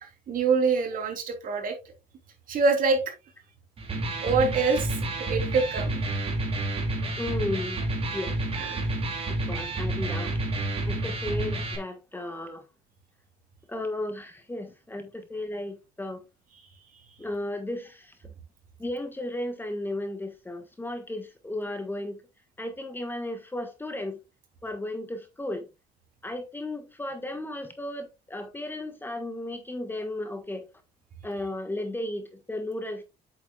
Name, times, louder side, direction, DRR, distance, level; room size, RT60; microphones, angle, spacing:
voice 1, 0.3-1.7 2.5-3.1 4.2-5.0 5.3-6.0 8.5-8.9, right 4 dB, 55° right, 3.2 m, -25 dB
Electric guitar, 3.8-11.8, right 2 dB, 35° right, 2.8 m, -29 dB
voice 2, 7.2-8.3 9.3-10.3 10.9-12.6 13.7-16.2 17.2-18.3 18.8-22.2 22.6-24.2 24.6-25.7 26.2-30.7 31.2-33.0, left 1 dB, 10° left, 1.5 m, -34 dB
8.4 x 7.1 x 2.4 m
cardioid pair, 110°, 17 cm